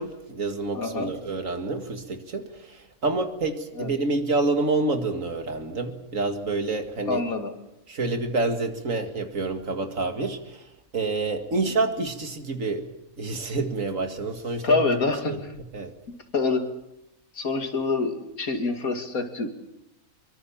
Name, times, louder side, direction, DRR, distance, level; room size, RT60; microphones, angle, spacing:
voice 1, 0.0-7.2 7.9-10.6 10.9-12.9 13.2-15.0 15.3-15.4 15.7-15.9, right 3 dB, 65° right, 6 dB, 2.4 m, -28 dB
voice 2, 0.7-1.1 3.8-3.9 7.1-7.5 14.6-15.5 16.1-16.7 17.3-19.5, left 3 dB, 75° left, 6 dB, 2.7 m, -26 dB
24.0 x 23.5 x 7.3 m, 0.90 s
omnidirectional pair, 1.5 m